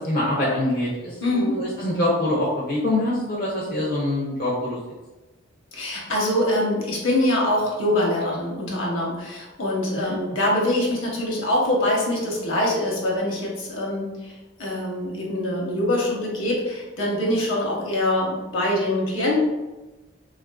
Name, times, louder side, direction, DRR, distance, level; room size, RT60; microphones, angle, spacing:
voice 1, 0.1-4.8 10.0-10.2, left 1 dB, 45° left, -5 dB, 0.5 m, -24 dB
voice 2, 1.2-1.6 5.7-19.4, left 1 dB, 65° left, -3 dB, 0.9 m, -24 dB
3.5 x 2.4 x 2.2 m, 1.1 s
head